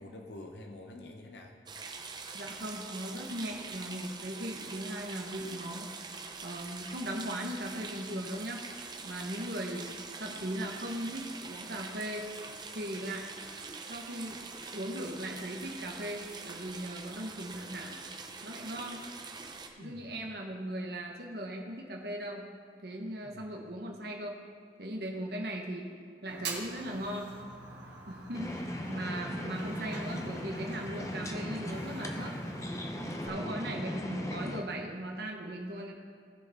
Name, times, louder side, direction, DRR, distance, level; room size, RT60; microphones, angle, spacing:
voice 1, 0.0-1.5 19.8-20.1 23.2-23.5 28.3-28.4 28.8-28.9 33.2-33.5, left 1 dB, 75° left, 3 dB, 0.9 m, -48 dB
sound 1, 1.7-19.7, right 4 dB, 25° right, 0.7 m, -44 dB
voice 2, 2.3-5.9 6.4-8.6 9.0-9.9 10.2-12.3 12.7-13.3 13.9-14.4 14.7-18.0 18.4-19.1 19.8-22.4 22.8-24.4 24.8-25.9 26.2-27.4 28.1-32.4 33.2-35.9, right 1 dB, 60° right, 0 dB, 1.2 m, -38 dB
Fire, 26.3-33.3, right 3 dB, 80° right, 1.7 m, -45 dB
sound 2, 28.3-34.6, equal, 15° left, 0.7 m, -38 dB
17.5 x 6.4 x 3.6 m, 2.3 s
head